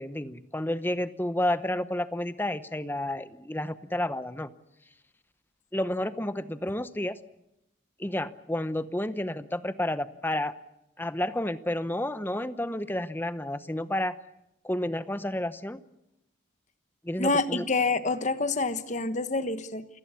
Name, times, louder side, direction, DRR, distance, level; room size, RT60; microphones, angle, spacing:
voice 1, 0.0-4.5 5.7-7.2 8.0-10.5 11.0-14.1 14.6-15.8 17.0-17.6, left 1 dB, 10° left, 0.8 m, -30 dB
voice 2, 17.2-19.9, left 3 dB, 40° left, 1.2 m, -27 dB
28.5 x 17.0 x 8.4 m
head